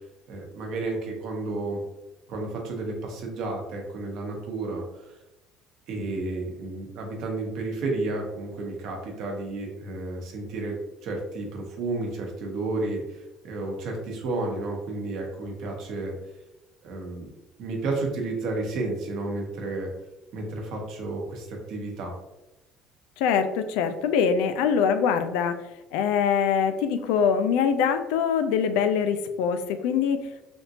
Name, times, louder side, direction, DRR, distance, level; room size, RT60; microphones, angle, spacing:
voice 1, 0.3-1.8 2.3-5.2 5.9-10.7 11.0-16.1 16.8-17.3 17.6-19.9 20.3-22.1, right 2 dB, 55° right, 1 dB, 0.8 m, -32 dB
voice 2, 23.2-25.6 25.9-30.4, left 7 dB, 85° left, 9 dB, 0.3 m, -23 dB
3.4 x 2.5 x 2.7 m, 0.97 s
cardioid pair, 165°, 0 cm